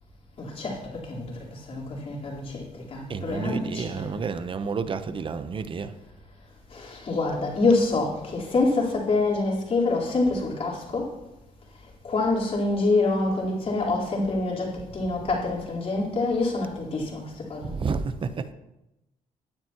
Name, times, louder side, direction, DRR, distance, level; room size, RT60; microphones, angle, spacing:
voice 1, 0.4-4.1 6.7-11.1 12.0-17.8, left 3 dB, 45° left, -3 dB, 4.0 m, -26 dB
voice 2, 3.1-5.9 17.6-18.5, right 5 dB, 35° right, 11 dB, 0.8 m, -30 dB
16.5 x 9.4 x 3.0 m, 0.94 s
cardioid pair, 85°, 14 cm